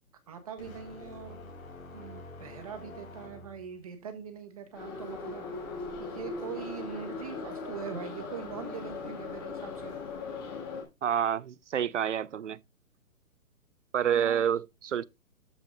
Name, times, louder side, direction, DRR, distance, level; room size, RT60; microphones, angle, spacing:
voice 1, 0.3-1.4 1.9-5.4 6.0-10.0 14.0-14.4, right 7 dB, 25° right, 1.5 m, -42 dB
sound 1, 0.6-3.8, left 2 dB, 65° left, 5.6 m, -47 dB
Subway metro underground, 4.7-10.8, left 4 dB, 15° left, 2.1 m, -39 dB
voice 2, 11.0-12.6 13.9-15.0, right 9 dB, 55° right, 0.5 m, -28 dB
13.5 x 6.0 x 3.9 m
hypercardioid pair, 180°, 44 cm